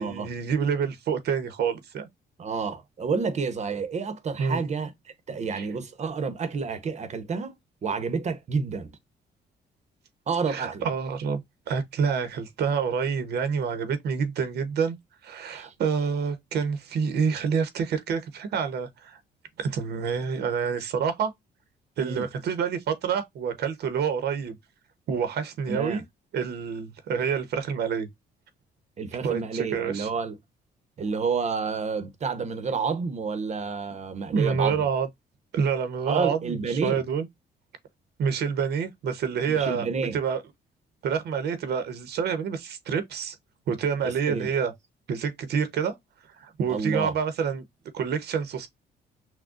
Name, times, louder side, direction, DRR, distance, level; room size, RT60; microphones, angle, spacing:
voice 1, 0.0-2.1 4.4-4.6 5.5-5.7 10.5-11.4 11.7-15.0 15.2-19.2 19.6-21.3 22.0-24.6 25.1-26.0 26.3-28.1 29.2-30.1 34.3-35.1 35.5-37.3 38.2-40.4 41.0-43.4 43.7-44.7 45.1-45.9 46.4-47.6 47.9-48.7, right 6 dB, 70° right, 0.9 m, -27 dB
voice 2, 2.4-4.9 5.3-7.5 7.8-8.9 10.3-10.8 15.5-15.7 22.0-22.3 25.7-26.0 29.0-30.4 31.0-34.9 36.1-37.0 39.5-40.2 44.0-44.5 46.7-47.1, right 5 dB, 40° right, 0.9 m, -29 dB
6.1 x 2.2 x 2.4 m
cardioid pair, 125°, 17 cm